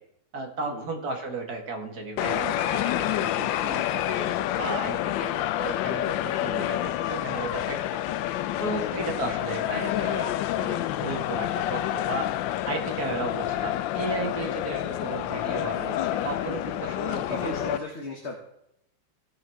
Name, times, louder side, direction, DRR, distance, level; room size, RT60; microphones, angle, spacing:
voice 1, 0.3-7.9 8.6-12.3 12.7-17.6, right 3 dB, 50° right, 2 dB, 2.3 m, -34 dB
sound 1, 2.2-17.8, left 13 dB, 80° left, 1.2 m, -28 dB
voice 2, 2.8-3.8 4.2-4.6 8.8-9.0 13.2-13.6 17.1-18.3, left 3 dB, 40° left, 1 dB, 1.5 m, -38 dB
16.5 x 6.4 x 4.5 m, 0.80 s
omnidirectional pair, 2.1 m